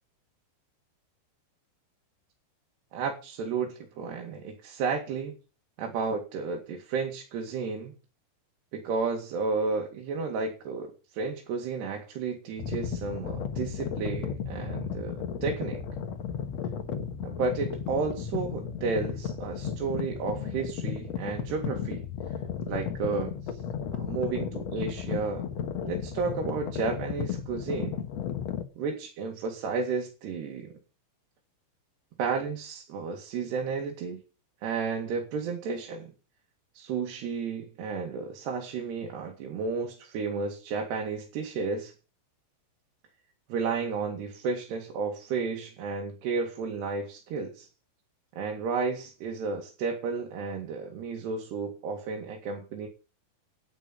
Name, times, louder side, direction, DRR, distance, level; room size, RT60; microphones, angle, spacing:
voice 1, 2.9-5.4 5.8-8.0 8.7-15.8 17.2-22.0 22.7-23.6 24.0-25.5 25.9-28.0 28.8-30.7 32.2-34.2 34.6-36.1 36.7-41.9 43.5-47.7 48.4-52.9, right 5 dB, 65° right, 2 dB, 4.0 m, -32 dB
sound 1, 12.6-28.6, left 7 dB, 70° left, 1.6 m, -34 dB
11.0 x 9.4 x 6.1 m, 0.32 s
omnidirectional pair, 5.3 m